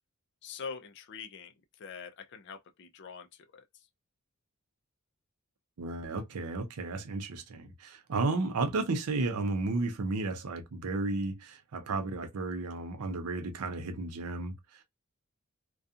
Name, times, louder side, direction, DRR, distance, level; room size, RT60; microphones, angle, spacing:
voice 1, 0.4-1.5 1.8-3.3 3.5-3.6, left 6 dB, 55° left, 0.4 m, -43 dB
voice 2, 5.8-14.5, right 3 dB, 90° right, 0.5 m, -33 dB
2.4 x 2.3 x 2.6 m
head